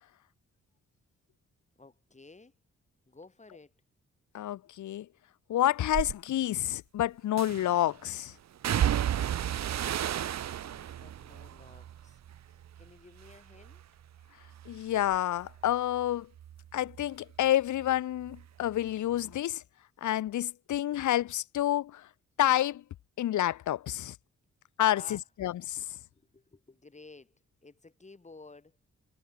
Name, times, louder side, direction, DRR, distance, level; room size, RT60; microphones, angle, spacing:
voice 1, 1.7-2.5 3.1-3.7 9.9-13.8 24.9-25.3 26.1-28.8, left 3 dB, 25° left, 5.0 m, -54 dB
voice 2, 4.3-5.1 5.5-8.3 14.7-16.3 16.7-19.6 20.0-22.0 22.4-22.8 23.2-24.1 24.8-25.8, left 12 dB, 85° left, 1.1 m, -29 dB
sound 1, 5.9-6.1 7.4-7.8 8.6-12.9 13.2-13.8 14.2-17.5 17.8-18.9 19.2-19.3, right 10 dB, 65° right, 0.9 m, -34 dB
cardioid pair, 85°, 29 cm